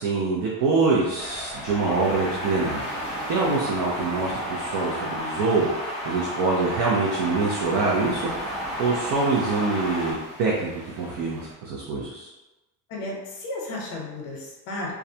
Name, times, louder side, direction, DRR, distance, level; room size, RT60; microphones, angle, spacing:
voice 1, 0.0-2.9 3.3-12.3, right 3 dB, 55° right, -4 dB, 0.5 m, -25 dB
sound 1, 0.9-11.5, right 1 dB, 25° right, 0.9 m, -42 dB
sound 2, 1.2-10.1, equal, ahead, 0.4 m, -32 dB
voice 2, 12.9-14.9, left 2 dB, 60° left, -2 dB, 0.7 m, -33 dB
2.3 x 2.1 x 2.6 m, 1.1 s
cardioid pair, 155°, 38 cm